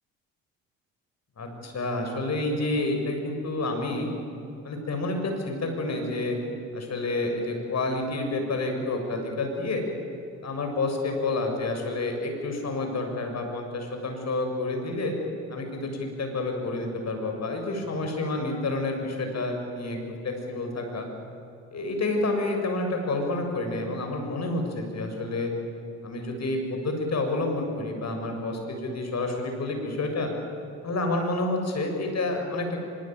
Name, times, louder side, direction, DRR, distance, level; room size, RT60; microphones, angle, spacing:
voice 1, 1.4-4.1 4.6-6.4 6.7-9.8 10.4-15.1 15.5-21.1 21.7-25.5 26.0-30.3 30.8-32.8, left 2 dB, 45° left, 3 dB, 7.4 m, -29 dB
24.0 x 23.0 x 9.4 m, 2.8 s
hypercardioid pair, 60°, 38 cm